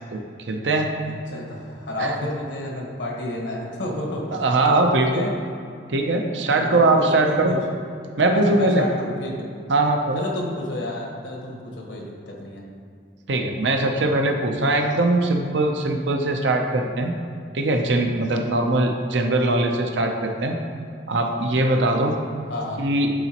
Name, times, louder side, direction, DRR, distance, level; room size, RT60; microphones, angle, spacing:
voice 1, 0.1-0.9 2.0-2.1 4.3-5.3 5.9-7.5 8.2-8.8 9.7-10.2 13.3-17.1 17.5-20.6 21.1-22.2 22.8-23.1, right 2 dB, 80° right, 3 dB, 0.7 m, -21 dB
voice 2, 1.0-5.3 6.6-7.6 8.3-9.4 10.1-12.6 22.5-22.8, left 1 dB, 80° left, -1 dB, 1.3 m, -31 dB
11.0 x 3.9 x 3.0 m, 2.4 s
head